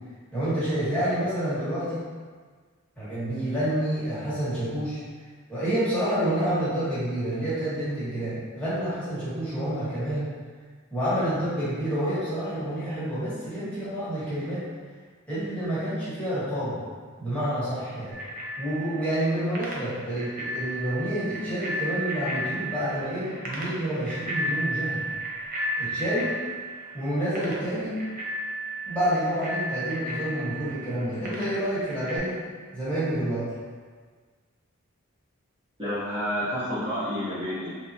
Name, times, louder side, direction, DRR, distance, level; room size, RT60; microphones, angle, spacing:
voice 1, 0.3-2.0 3.0-5.0 5.5-10.2 10.9-14.6 15.3-16.8 17.2-18.1 18.6-25.1 25.8-26.3 26.9-28.0 28.8-32.4 32.7-33.5, right 1 dB, 5° left, -13 dB, 1.3 m, -28 dB
Bicycle bell, 18.1-32.2, equal, 40° right, 0.6 m, -34 dB
voice 2, 35.8-37.8, equal, 20° right, -13 dB, 1.0 m, -29 dB
3.3 x 2.8 x 2.7 m, 1.5 s
head